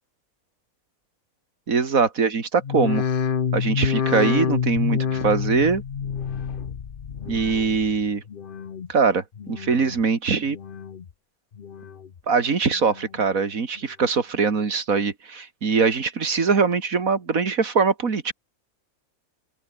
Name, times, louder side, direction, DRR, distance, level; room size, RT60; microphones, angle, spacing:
voice 1, 1.7-3.0 3.5-5.8 7.3-8.2 8.9-10.6 12.3-18.3, right 5 dB, 65° right, 2.5 m, -22 dB
sound 1, 2.6-8.0 8.3-8.9 9.3-10.0 10.4-11.1 11.5-12.2 12.7-13.2 13.8-13.9, left 7 dB, 45° left, 0.9 m, -28 dB
open air
omnidirectional pair, 1.6 m